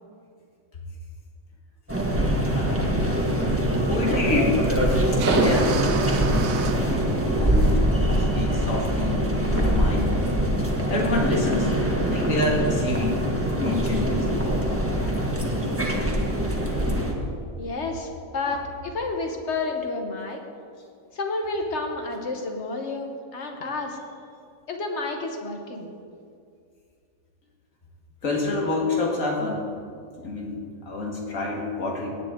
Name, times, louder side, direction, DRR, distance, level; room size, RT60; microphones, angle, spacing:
sound 1, 1.9-17.1, right 1 dB, 10° right, 1.3 m, -23 dB
voice 1, 2.5-3.0 3.9-4.7 5.3-6.0 6.6-7.0 7.3-7.7 8.3-10.0 10.9-11.7 12.0-13.2 13.6-14.4 28.2-29.6 30.2-30.6 30.9-32.1, left 2 dB, 70° left, -2 dB, 2.4 m, -27 dB
sound 2, 2.8-7.8, right 7 dB, 60° right, 0.9 m, -35 dB
voice 2, 17.6-20.4 21.1-24.0 24.7-25.9, left 3 dB, 55° left, 3 dB, 1.5 m, -30 dB
17.5 x 9.8 x 3.8 m, 2.3 s
omnidirectional pair, 1.4 m